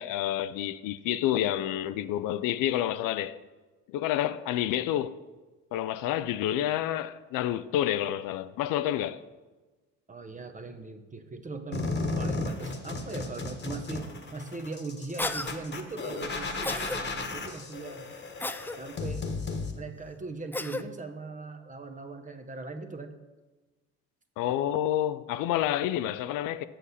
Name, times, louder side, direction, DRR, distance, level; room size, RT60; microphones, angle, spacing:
voice 1, 0.0-3.4 3.9-5.2 5.7-9.2 24.4-26.6, left 12 dB, 70° left, 0.5 m, -29 dB
voice 2, 10.1-18.1 18.8-19.3 19.8-23.2, right 3 dB, 20° right, 0.9 m, -40 dB
sound 1, 11.7-19.7, left 3 dB, 30° left, 1.3 m, -34 dB
Cough, 15.2-15.5 16.6-17.0 18.4-18.8 20.5-20.8, left 2 dB, 5° left, 0.3 m, -33 dB
7.6 x 6.6 x 4.1 m
supercardioid pair, 75°, 35 cm